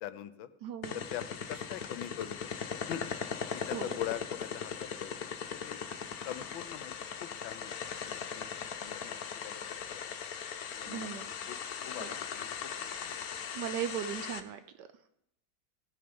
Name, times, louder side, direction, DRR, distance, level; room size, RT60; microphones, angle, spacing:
voice 1, 0.0-0.5 0.9-2.3 2.7-5.3 5.6-5.8 6.2-6.9 7.2-7.7 8.0-8.5 8.8-10.0 10.7-11.6 11.8-12.5 13.0-13.2, left 11 dB, 75° left, 13 dB, 1.4 m, -42 dB
voice 2, 0.6-1.0 3.7-4.0 10.9-11.3 12.0-12.1 12.9-13.1 13.5-15.1, right 9 dB, 70° right, 10 dB, 1.1 m, -38 dB
sound 1, 0.8-14.4, left 7 dB, 60° left, 1.1 m, -39 dB
17.0 x 6.6 x 5.3 m, 0.79 s
omnidirectional pair, 2.2 m